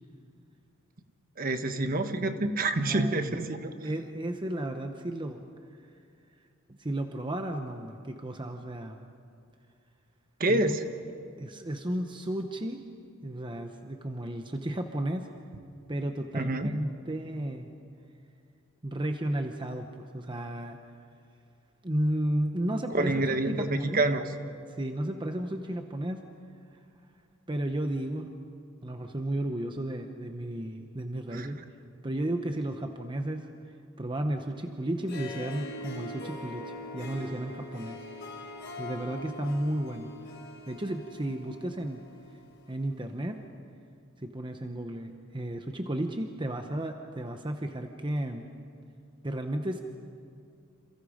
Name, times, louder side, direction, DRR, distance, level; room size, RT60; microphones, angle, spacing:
voice 1, 1.4-3.7 10.4-10.8 16.3-16.7 22.9-24.2 31.3-31.5, right 2 dB, 45° right, 7 dB, 1.3 m, -27 dB
voice 2, 2.8-3.4 3.8-5.5 6.7-9.0 10.5-10.8 11.4-12.9 13.2-15.3 15.9-17.7 18.8-20.8 21.8-24.0 24.7-26.3 26.7-26.8 27.5-28.3 28.8-31.6 32.0-33.6 34.0-38.5 38.8-40.1 40.7-42.1 42.7-43.5 44.2-48.5 49.2-49.8, right 1 dB, 25° right, 5 dB, 0.9 m, -33 dB
Harp, 34.9-42.4, left 2 dB, 55° left, 4.2 m, -43 dB
28.5 x 28.0 x 5.1 m, 2.5 s
head